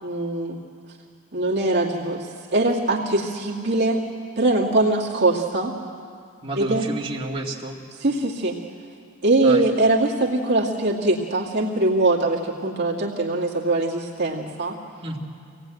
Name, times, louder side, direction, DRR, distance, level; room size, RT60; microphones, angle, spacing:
voice 1, 0.0-0.6 1.3-4.0 4.4-5.7 6.6-6.9 8.0-8.6 9.2-14.8, right 2 dB, 50° right, -3 dB, 2.3 m, -22 dB
voice 2, 6.4-7.8 9.4-9.6 15.0-15.2, right 2 dB, 25° right, -4 dB, 2.4 m, -30 dB
25.5 x 18.0 x 9.1 m, 2.3 s
head